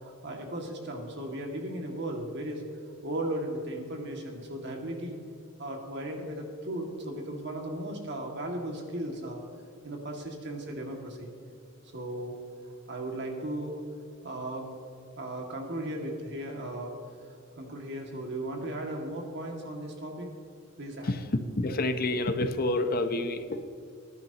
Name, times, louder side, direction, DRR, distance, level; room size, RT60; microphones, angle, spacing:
voice 1, 0.0-2.6 3.0-5.2 5.6-9.4 9.8-11.3 11.9-12.4 12.9-13.8 14.2-14.7 15.2-16.9 17.3-20.3 20.8-21.1, right 1 dB, 60° right, 1 dB, 2.2 m, -36 dB
voice 2, 21.6-23.7, left 2 dB, 50° left, 9 dB, 0.8 m, -28 dB
19.5 x 11.0 x 3.0 m, 2.6 s
head